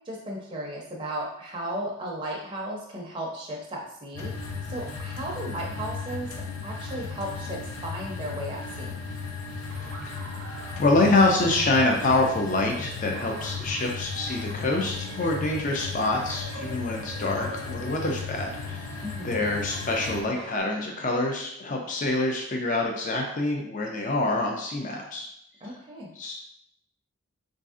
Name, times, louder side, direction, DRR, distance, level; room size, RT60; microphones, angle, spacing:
voice 1, 0.1-4.3 4.7-6.3 6.6-9.0 19.0-19.5 25.6-26.1, right 1 dB, 20° right, -3 dB, 0.5 m, -35 dB
sound 1, 4.2-20.2, left 4 dB, 90° left, 0.5 m, -36 dB
Laughter, 9.7-20.6, right 2 dB, 65° right, 0.5 m, -45 dB
voice 2, 10.8-18.9 19.2-25.3 26.2-26.3, left 2 dB, 35° left, 1 dB, 0.4 m, -26 dB
4.0 x 2.6 x 2.4 m, 0.73 s
head